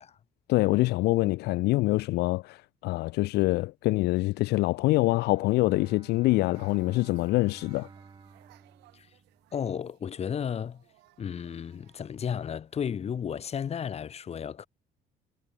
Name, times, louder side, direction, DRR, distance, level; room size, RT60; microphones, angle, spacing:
voice 1, 0.5-7.9, left 20 dB, 80° left, 0.4 m, -25 dB
Bowed string instrument, 4.7-9.6, right 5 dB, 25° right, 2.2 m, -52 dB
sound 1, 6.5-13.4, right 20 dB, 90° right, 4.2 m, -63 dB
voice 2, 9.5-10.8 11.2-14.7, left 8 dB, 40° left, 1.1 m, -33 dB
cardioid pair, 110°, 17 cm